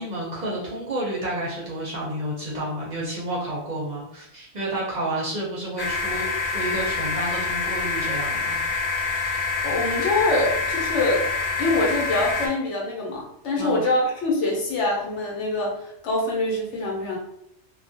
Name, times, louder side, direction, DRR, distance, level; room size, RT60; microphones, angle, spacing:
voice 1, 0.0-8.6 13.6-13.8, right 1 dB, 50° right, -5 dB, 0.6 m, -30 dB
sound 1, 5.8-12.5, left 4 dB, 65° left, 0.4 m, -26 dB
voice 2, 9.6-11.3 11.6-17.2, left 2 dB, 80° left, -2 dB, 1.0 m, -24 dB
2.3 x 2.2 x 2.6 m, 0.76 s
omnidirectional pair, 1.2 m